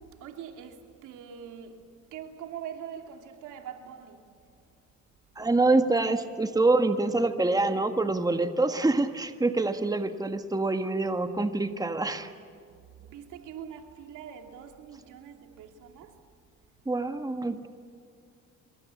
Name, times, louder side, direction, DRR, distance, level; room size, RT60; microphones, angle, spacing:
voice 1, 0.0-4.4 13.0-16.2, right 8 dB, 90° right, 2.8 m, -43 dB
voice 2, 5.4-12.3 16.8-17.7, right 2 dB, 10° right, 1.6 m, -26 dB
26.0 x 24.0 x 8.4 m
cardioid pair, 90°, 30 cm